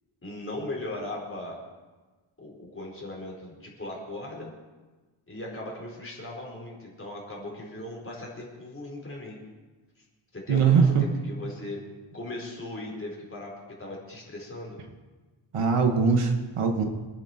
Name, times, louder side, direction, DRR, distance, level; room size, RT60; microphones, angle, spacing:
voice 1, 0.2-1.6 2.4-4.5 5.3-9.4 10.0-10.1 10.3-11.8 12.1-14.8, left 1 dB, 25° left, -3 dB, 4.6 m, -38 dB
voice 2, 10.5-11.0 15.5-16.8, right 5 dB, 90° right, 3 dB, 2.0 m, -21 dB
25.5 x 10.0 x 4.6 m, 1.3 s
wide cardioid pair, 170°, 50 cm